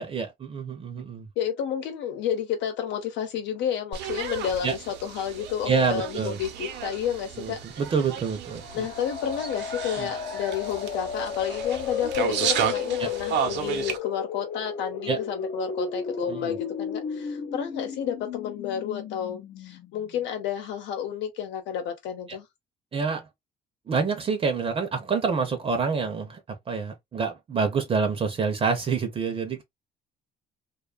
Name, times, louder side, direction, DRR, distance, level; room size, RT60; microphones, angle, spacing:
voice 1, 0.0-1.3 4.6-4.7 5.7-6.4 7.4-8.9 10.0-10.1 13.0-13.1 15.1-15.2 16.3-16.6 22.9-23.2 23.9-26.4 26.7-29.6, right 5 dB, 30° right, 0.6 m, -27 dB
voice 2, 1.4-7.6 8.7-22.5, left 9 dB, 85° left, 0.9 m, -31 dB
sound 1, 3.9-14.0, right 8 dB, 75° right, 0.7 m, -33 dB
sound 2, 8.5-20.2, left 7 dB, 45° left, 0.5 m, -34 dB
2.5 x 2.3 x 2.4 m
cardioid pair, 125°, 18 cm